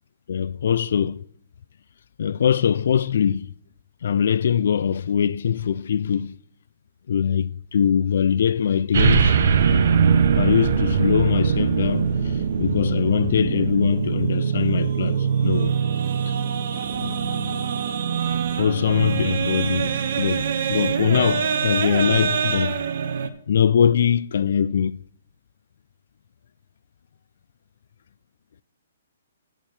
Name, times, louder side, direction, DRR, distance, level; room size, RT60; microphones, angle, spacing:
voice 1, 0.3-1.3 2.2-3.5 4.0-6.3 7.1-9.4 10.4-15.8 16.3-16.4 16.9-17.1 18.3-22.8 23.2-25.0, left 8 dB, 65° left, 0.3 m, -22 dB
sound 1, 8.9-23.3, right 6 dB, 60° right, 0.9 m, -22 dB
7.4 x 7.1 x 7.1 m
hypercardioid pair, 155°, 0 cm